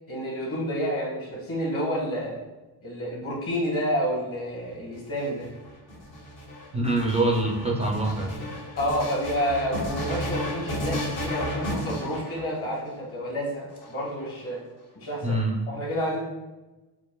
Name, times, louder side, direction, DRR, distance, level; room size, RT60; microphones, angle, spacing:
voice 1, 0.1-2.4 2.8-5.5 8.8-14.6 14.9-15.4 15.7-16.2, equal, 35° left, -3 dB, 1.3 m, -29 dB
sound 1, 4.9-12.9 13.7-14.6, left 1 dB, 60° left, 1.4 m, -33 dB
voice 2, 6.7-8.5 15.2-15.6, right 2 dB, 20° right, -2 dB, 0.3 m, -25 dB
6.5 x 2.5 x 2.2 m, 1.1 s
cardioid pair, 135°, 41 cm